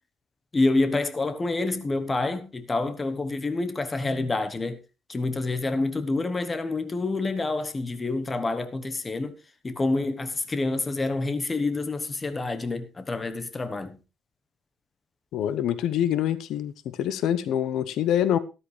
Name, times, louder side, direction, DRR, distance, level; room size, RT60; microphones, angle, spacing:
voice 1, 0.5-4.8 5.1-9.4 9.6-14.0, left 2 dB, 20° left, 1.1 m, -27 dB
voice 2, 15.3-18.4, left 10 dB, 70° left, 0.9 m, -25 dB
13.0 x 13.0 x 3.3 m
cardioid pair, 150°, 0 cm